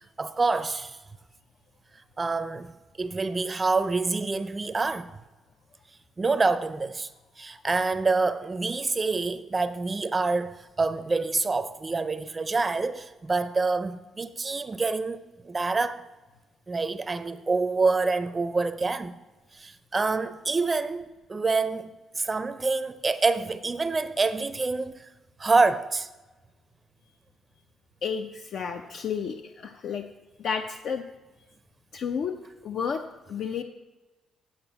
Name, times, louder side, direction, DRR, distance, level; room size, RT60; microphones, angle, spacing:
voice 1, 0.2-1.0 2.2-2.7 3.0-5.1 6.2-7.1 7.4-16.0 16.7-19.1 19.5-25.0 25.4-26.1, right 3 dB, 25° right, 0.5 m, -27 dB
voice 2, 28.0-30.0 30.4-31.0 31.9-32.3 32.6-33.0 33.3-33.6, left 6 dB, 65° left, 0.6 m, -31 dB
8.8 x 5.5 x 8.0 m
cardioid pair, 90°, 0 cm